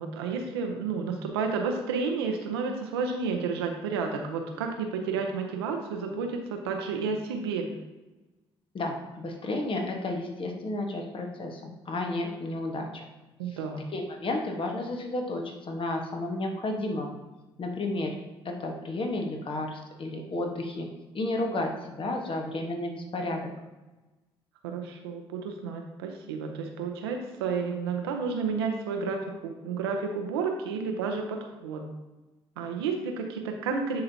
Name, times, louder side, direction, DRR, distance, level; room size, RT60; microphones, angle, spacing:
voice 1, 0.0-7.8 13.4-13.8 24.6-31.9 32.6-34.0, right 5 dB, 90° right, 3 dB, 0.7 m, -31 dB
voice 2, 8.7-13.0 13.9-17.1 17.6-18.2 18.4-20.9 21.1-23.5, left 2 dB, 45° left, 2 dB, 1.3 m, -32 dB
10.0 x 3.9 x 2.8 m, 1.1 s
hypercardioid pair, 50°, 13 cm